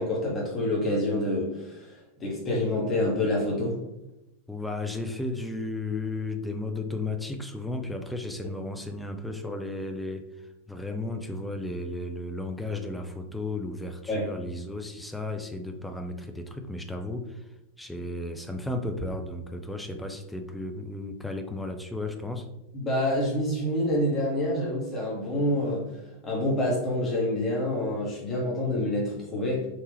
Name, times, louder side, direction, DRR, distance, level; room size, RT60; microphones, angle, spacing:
voice 1, 0.0-3.7 14.1-14.3 22.7-29.7, left 1 dB, 20° left, -4 dB, 1.1 m, -27 dB
voice 2, 4.5-10.3 10.7-17.5 17.8-22.5, left 2 dB, 5° left, 5 dB, 0.4 m, -34 dB
3.3 x 2.8 x 3.4 m, 0.91 s
figure-of-eight pair, 90°, 0 cm